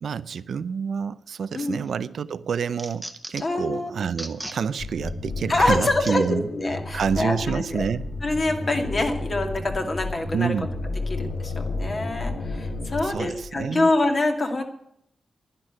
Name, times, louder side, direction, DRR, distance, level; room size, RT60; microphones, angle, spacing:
voice 1, 0.0-6.5 6.9-8.1 10.3-10.7 13.0-13.9, right 6 dB, 70° right, 0.5 m, -28 dB
sound 1, 1.5-1.9 2.3-3.6 4.1-4.6 5.1-5.2 6.0-6.2 6.9-7.1, right 1 dB, 5° right, 1.2 m, -37 dB
voice 2, 3.4-3.9 5.5-7.8 8.2-10.5 11.1-14.6, left 2 dB, 35° left, 2.2 m, -25 dB
sound 2, 4.8-13.6, left 2 dB, 70° left, 2.1 m, -32 dB
11.0 x 10.5 x 9.0 m
wide cardioid pair, 160°, 0 cm